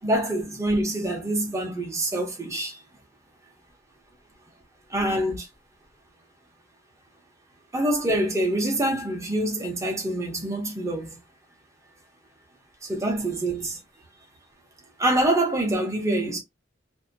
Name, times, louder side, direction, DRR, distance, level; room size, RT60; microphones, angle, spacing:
voice 1, 0.0-2.8 4.9-5.5 7.7-11.2 12.8-13.8 15.0-16.4, right 1 dB, 15° right, 0.8 m, -25 dB
2.7 x 2.1 x 2.6 m
head